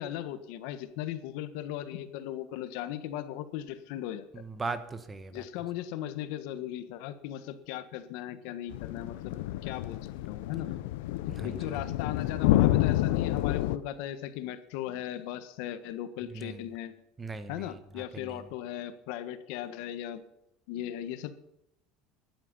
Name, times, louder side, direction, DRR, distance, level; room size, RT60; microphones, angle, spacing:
voice 1, 0.0-4.4 5.3-10.7 11.4-16.9 17.5-20.2 20.7-21.3, left 12 dB, 70° left, 11 dB, 1.4 m, -38 dB
voice 2, 4.3-5.4 11.3-11.8 16.3-16.6 17.2-17.7 18.1-18.4, right 3 dB, 15° right, 11 dB, 1.2 m, -38 dB
sound 1, 8.7-13.8, left 15 dB, 85° left, 0.7 m, -28 dB
14.5 x 12.0 x 5.6 m, 0.84 s
cardioid pair, 145°, 0 cm